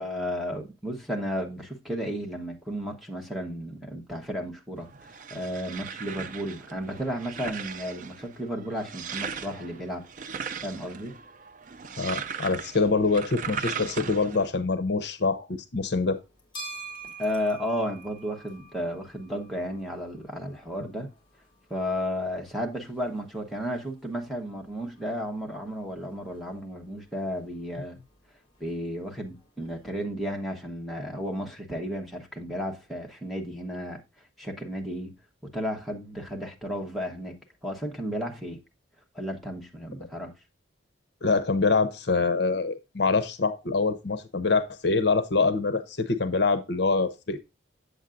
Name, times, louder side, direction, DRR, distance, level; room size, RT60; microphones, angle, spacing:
voice 1, 0.0-10.0 10.6-11.2 17.2-21.1 21.7-28.0 28.6-34.0 34.4-35.2 35.4-38.6 39.1-40.3, equal, ahead, 1.1 m, -33 dB
sound 1, 4.8-14.5, right 6 dB, 40° right, 0.4 m, -38 dB
voice 2, 12.0-16.2 41.2-47.4, left 4 dB, 55° left, 0.7 m, -25 dB
sound 2, 16.2-30.0, right 3 dB, 25° left, 1.8 m, -49 dB
7.9 x 7.2 x 2.5 m
head